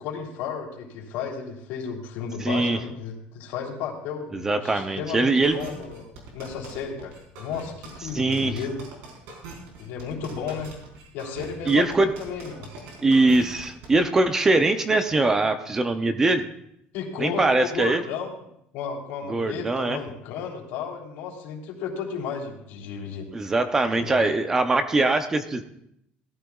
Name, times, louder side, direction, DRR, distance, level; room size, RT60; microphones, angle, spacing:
voice 1, 0.0-6.0 6.3-8.8 9.8-10.7 11.1-12.7 16.9-18.3 18.7-23.3 23.9-24.2, left 6 dB, 70° left, -1 dB, 3.3 m, -33 dB
voice 2, 2.4-2.8 4.3-5.6 8.1-8.6 11.7-12.1 13.0-16.4 17.2-18.0 19.3-20.0 23.3-25.6, right 2 dB, 15° right, 9 dB, 0.5 m, -22 dB
sound 1, 5.4-14.0, right 3 dB, 75° right, 4.2 m, -42 dB
18.5 x 13.5 x 2.4 m, 0.75 s
cardioid pair, 180°, 4 cm